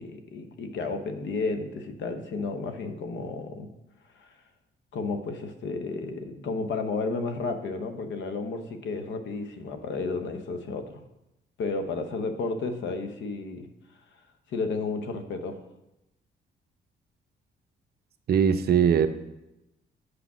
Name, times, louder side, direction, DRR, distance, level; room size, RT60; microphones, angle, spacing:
voice 1, 0.0-3.7 4.2-4.3 4.9-10.9 11.6-13.7 14.5-15.6, left 3 dB, 70° left, 7 dB, 0.9 m, -32 dB
voice 2, 18.3-19.1, right 7 dB, 55° right, 10 dB, 0.6 m, -20 dB
6.1 x 4.9 x 6.1 m, 0.93 s
cardioid pair, 90°, 20 cm